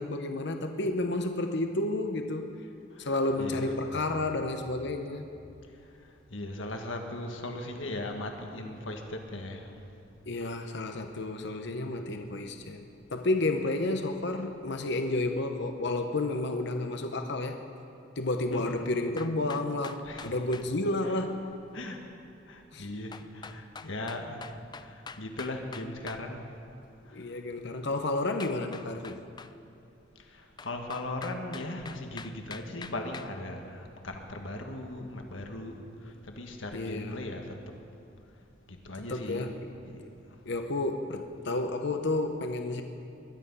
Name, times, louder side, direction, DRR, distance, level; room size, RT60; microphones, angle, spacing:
voice 1, 0.0-2.6 3.0-5.3 10.3-12.8 13.1-17.6 18.2-21.4 22.7-22.9 27.1-29.2 36.7-37.2 39.1-39.5 40.5-42.8, left 2 dB, 65° left, 6 dB, 0.9 m, -31 dB
voice 2, 3.4-3.7 6.0-9.8 18.5-18.8 20.0-20.4 21.7-22.0 22.5-26.5 27.0-27.3 30.2-37.6 38.7-39.5 39.8-40.1, left 1 dB, 85° left, 3 dB, 1.6 m, -38 dB
sound 1, 19.2-20.7 23.1-26.2 28.4-29.5 30.6-33.3, left 5 dB, 20° left, 0.4 m, -45 dB
21.0 x 11.5 x 5.5 m, 2.7 s
head